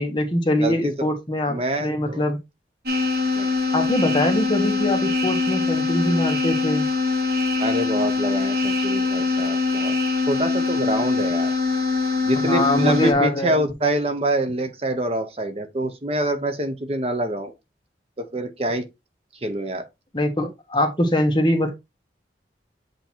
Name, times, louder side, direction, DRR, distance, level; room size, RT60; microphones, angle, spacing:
voice 1, 0.0-2.4 3.7-6.9 12.4-13.7 20.1-21.7, left 1 dB, 25° left, 1.4 m, -23 dB
voice 2, 0.6-1.1 1.5-2.2 3.3-3.5 7.6-10.0 10.3-11.5 12.3-17.5 18.2-18.9 19.4-19.8, right 1 dB, 35° right, 0.8 m, -26 dB
sound 1, 2.9-13.1, left 4 dB, 55° right, 1.6 m, -23 dB
8.0 x 3.0 x 4.4 m
head